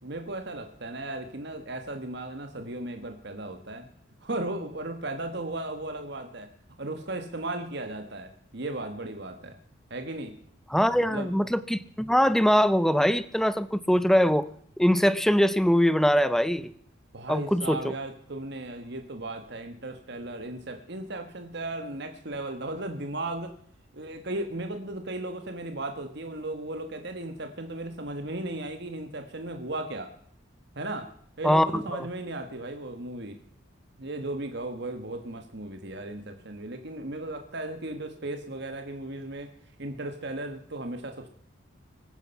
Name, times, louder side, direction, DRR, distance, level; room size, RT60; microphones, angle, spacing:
voice 1, 0.0-3.9 4.2-6.5 6.8-9.6 9.9-10.3 11.0-11.3 17.1-23.5 23.9-30.1 30.7-31.1 31.4-33.4 34.0-39.5 39.8-41.3, right 2 dB, 55° right, 6 dB, 1.4 m, -36 dB
voice 2, 10.7-14.5 14.8-16.7 17.3-17.9 31.4-32.1, equal, ahead, 15 dB, 0.5 m, -22 dB
23.0 x 9.7 x 5.8 m, 0.64 s
head